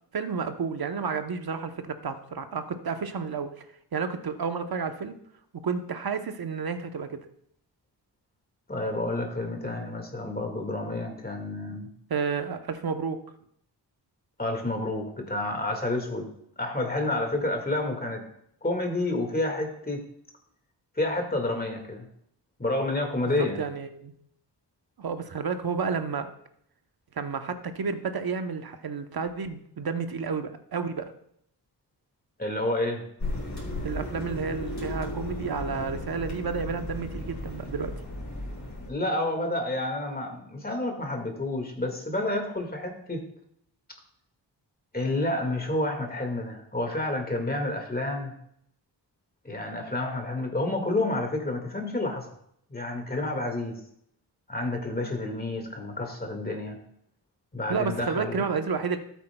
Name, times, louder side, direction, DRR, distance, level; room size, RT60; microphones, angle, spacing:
voice 1, 0.1-3.6 3.9-5.2 5.6-7.2 12.1-13.2 23.2-24.1 25.0-26.3 27.2-31.1 33.8-37.9 57.7-59.0, right 5 dB, 55° right, 8 dB, 0.9 m, -31 dB
voice 2, 8.7-11.9 14.4-16.3 16.6-18.2 18.6-20.1 21.0-22.1 22.6-23.6 32.4-33.0 38.9-43.2 44.9-48.3 49.4-52.3 52.7-53.8 54.5-56.8 57.5-58.4, left 2 dB, 20° left, 4 dB, 1.8 m, -29 dB
sound 1, 33.2-38.9, left 1 dB, 40° left, 4.1 m, -35 dB
13.0 x 8.2 x 2.2 m, 0.70 s
cardioid pair, 70°, 43 cm